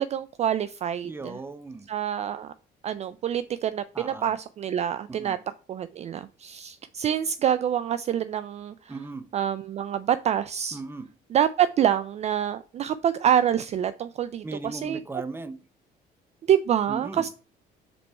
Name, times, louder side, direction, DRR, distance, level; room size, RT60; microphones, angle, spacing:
voice 1, 0.0-1.4 1.9-2.5 2.8-5.4 5.7-8.9 9.3-10.8 11.3-15.0 16.4-17.3, right 9 dB, 40° right, 0.3 m, -26 dB
voice 2, 1.0-1.9 3.9-4.3 5.1-5.4 8.9-9.3 10.7-11.1 14.4-15.6 16.9-17.3, right 3 dB, 15° right, 0.7 m, -37 dB
5.3 x 4.2 x 4.4 m
cardioid pair, 110°, 17 cm